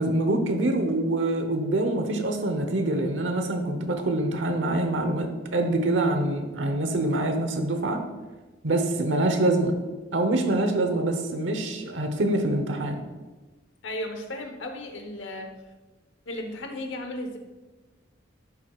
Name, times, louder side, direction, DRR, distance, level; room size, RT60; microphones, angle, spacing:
voice 1, 0.0-8.0 8.6-9.8 10.1-13.0, right 2 dB, 80° right, 6 dB, 1.0 m, -25 dB
voice 2, 13.8-15.5 16.3-17.4, left 1 dB, 80° left, 4 dB, 1.1 m, -35 dB
11.0 x 7.6 x 2.4 m, 1.2 s
head